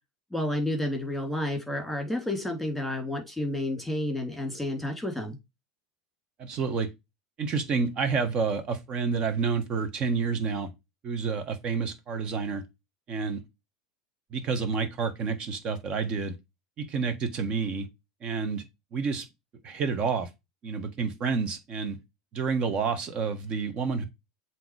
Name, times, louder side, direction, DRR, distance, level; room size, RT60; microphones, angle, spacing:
voice 1, 0.3-5.4, left 1 dB, ahead, 2.9 m, -30 dB
voice 2, 6.4-6.9 7.4-10.7 11.0-12.6 13.1-13.4 14.3-16.3 16.8-17.9 18.2-18.6 18.9-19.3 19.6-20.3 20.6-22.0 22.3-24.0, right 5 dB, 40° right, 1.5 m, -29 dB
7.7 x 3.2 x 4.8 m
hypercardioid pair, 90°, 2 cm